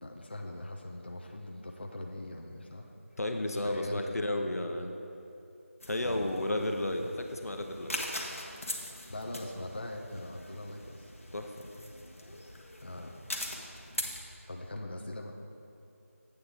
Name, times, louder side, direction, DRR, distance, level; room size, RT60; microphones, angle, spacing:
voice 1, 0.0-2.9 3.5-4.2 6.0-6.3 9.1-11.1 12.8-13.2 14.5-15.4, left 1 dB, 45° left, 2 dB, 0.4 m, -41 dB
voice 2, 3.2-4.9 5.9-8.0 11.3-11.7, left 1 dB, 90° left, 4 dB, 0.8 m, -32 dB
sound 1, 5.8-14.2, left 1 dB, 65° left, 1.1 m, -42 dB
7.9 x 7.1 x 3.4 m, 2.7 s
figure-of-eight pair, 175°, 8 cm